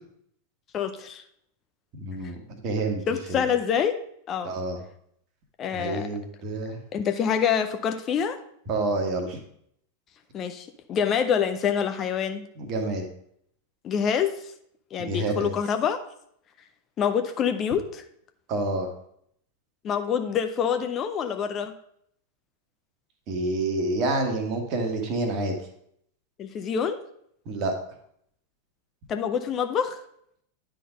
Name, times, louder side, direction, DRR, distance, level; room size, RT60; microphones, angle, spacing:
voice 1, 0.7-1.2 3.1-4.0 4.3-4.5 5.6-6.1 6.9-8.4 10.3-12.5 13.8-14.4 14.9-16.0 17.0-18.0 19.8-21.7 26.4-27.0 29.1-30.0, left 7 dB, 30° left, 7 dB, 0.5 m, -26 dB
voice 2, 2.0-3.0 3.3-3.4 4.4-4.8 5.7-6.8 8.7-9.4 12.6-13.1 15.0-15.5 18.5-18.9 23.3-25.6 27.4-27.7, right 2 dB, 40° right, 4 dB, 1.5 m, -28 dB
10.0 x 3.9 x 5.1 m, 0.69 s
figure-of-eight pair, 90°, 0 cm